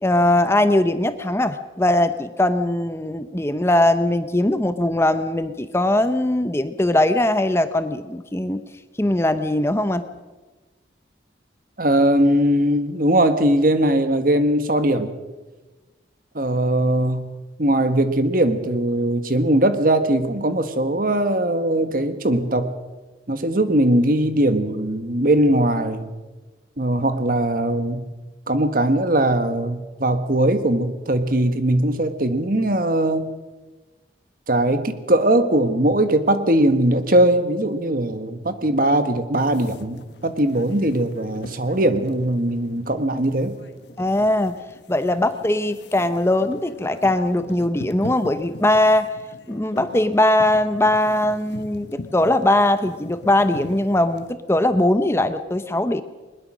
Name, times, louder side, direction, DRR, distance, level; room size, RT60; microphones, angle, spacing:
voice 1, 0.0-8.6 9.0-10.0 44.0-44.5 44.9-49.1 49.5-56.0, left 1 dB, 15° left, 10 dB, 0.7 m, -20 dB
voice 2, 11.8-15.1 16.3-17.3 17.6-22.7 23.3-26.1 26.8-28.1 28.5-33.3 34.5-43.6, right 1 dB, 50° right, 9 dB, 1.5 m, -20 dB
sound 1, 39.4-54.3, left 2 dB, 70° left, 1.3 m, -41 dB
21.5 x 21.0 x 6.2 m, 1.2 s
head